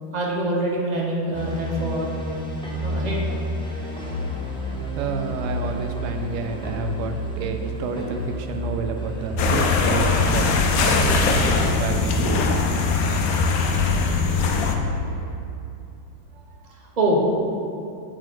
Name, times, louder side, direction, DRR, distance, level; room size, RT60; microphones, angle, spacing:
voice 1, 0.1-2.3 2.8-3.2 4.8-5.0 11.0-11.6 16.4-17.3, right 1 dB, 45° right, -2 dB, 0.5 m, -26 dB
sound 1, 1.3-15.3, equal, 5° left, 0.4 m, -30 dB
voice 2, 4.9-10.5 10.8-12.5, right 5 dB, 70° right, 5 dB, 1.0 m, -30 dB
sound 2, 9.4-14.8, left 4 dB, 70° left, 0.8 m, -21 dB
9.2 x 4.3 x 4.5 m, 2.7 s
omnidirectional pair, 2.1 m